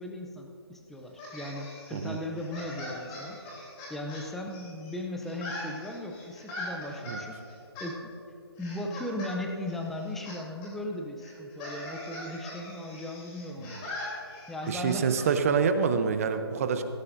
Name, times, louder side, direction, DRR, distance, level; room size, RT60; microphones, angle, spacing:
voice 1, 0.0-3.4 3.9-7.4 7.8-8.1 8.6-13.8 14.5-15.1, left 1 dB, ahead, 2 dB, 0.5 m, -37 dB
sound 1, 1.2-4.9 5.2-7.2 7.7-7.9 8.6-9.3 9.6-10.4 10.6-10.7 11.2-15.3, left 1 dB, 20° left, 3.2 m, -41 dB
voice 2, 14.7-16.8, right 6 dB, 35° right, 9 dB, 0.7 m, -26 dB
17.5 x 13.5 x 2.6 m, 2.6 s
hypercardioid pair, 155°, 14 cm